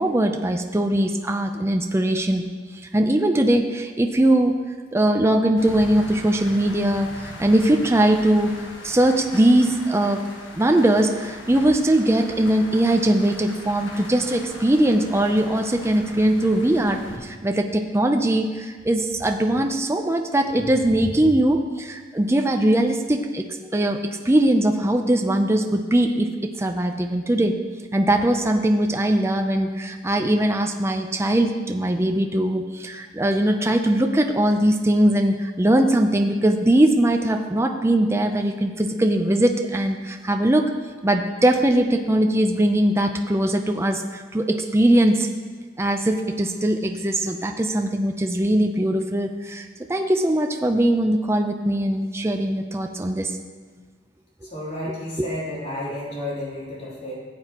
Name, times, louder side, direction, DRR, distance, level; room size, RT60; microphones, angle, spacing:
voice 1, 0.0-2.5 2.9-4.5 4.9-10.2 10.5-24.0 24.2-27.6 27.9-40.7 41.0-45.3 45.8-53.4 55.2-55.3, right 1 dB, 15° right, 4 dB, 0.5 m, -21 dB
sound 1, 5.6-17.2, left 2 dB, 80° left, 1.4 m, -40 dB
voice 2, 54.4-57.1, left 1 dB, 35° left, -6 dB, 3.2 m, -31 dB
15.5 x 7.8 x 2.9 m, 1.5 s
head